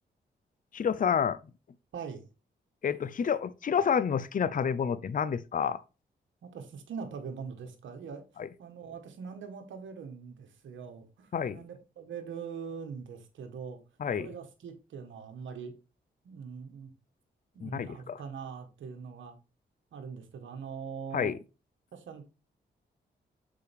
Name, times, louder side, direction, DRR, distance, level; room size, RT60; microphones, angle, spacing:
voice 1, 0.7-1.4 2.8-5.8 8.4-8.5 11.3-11.6 14.0-14.3 17.6-18.2 21.1-21.3, left 7 dB, 45° left, 0.6 m, -29 dB
voice 2, 1.9-2.2 6.4-8.2 8.6-13.8 14.2-15.7 16.2-16.9 17.5-19.4 19.9-21.3 21.9-22.3, right 6 dB, 80° right, 1.4 m, -42 dB
6.7 x 4.9 x 3.4 m
supercardioid pair, 50°, 19 cm